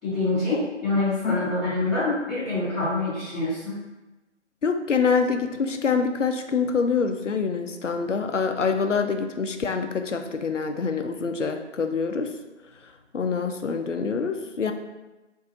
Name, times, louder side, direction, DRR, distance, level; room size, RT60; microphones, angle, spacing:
voice 1, 0.0-3.7, left 2 dB, ahead, -24 dB, 1.1 m, -26 dB
voice 2, 4.6-12.3 13.1-14.7, left 5 dB, 80° left, 6 dB, 0.5 m, -25 dB
4.0 x 2.6 x 2.5 m, 1.1 s
figure-of-eight pair, 175°, 37 cm